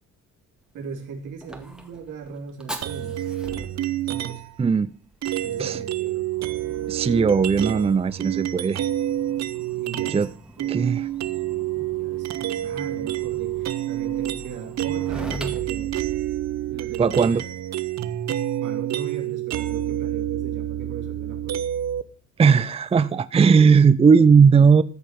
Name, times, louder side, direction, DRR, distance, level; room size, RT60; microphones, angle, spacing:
Fire, 0.6-16.8, right 1 dB, ahead, 2.1 m, -44 dB
voice 1, 0.7-4.5 5.3-6.3 9.7-10.3 10.6-11.0 11.9-16.0 16.7-17.4 18.6-21.7, right 5 dB, 85° right, 3.4 m, -38 dB
sound 1, 2.8-4.6 5.2-10.3 10.6-22.0, right 13 dB, 60° right, 0.9 m, -28 dB
voice 2, 4.6-4.9 5.6-5.8 6.9-8.8 10.1-10.3 10.7-11.0 17.0-17.4 22.4-24.8, right 5 dB, 20° right, 0.5 m, -17 dB
sound 2, 15.1-17.2, right 6 dB, 40° right, 2.6 m, -40 dB
14.0 x 6.5 x 5.9 m
cardioid pair, 90°, 30 cm